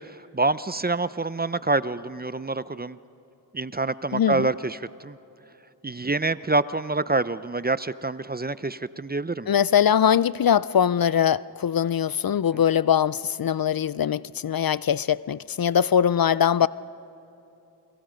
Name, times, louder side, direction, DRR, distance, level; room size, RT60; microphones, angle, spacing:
voice 1, 0.0-3.0 3.5-5.2 5.8-9.5 12.5-12.6, right 3 dB, 20° right, 15 dB, 0.6 m, -27 dB
voice 2, 4.1-4.5 9.5-16.7, left 9 dB, 55° left, 19 dB, 0.5 m, -22 dB
29.0 x 23.5 x 5.2 m, 2.9 s
cardioid pair, 45°, 44 cm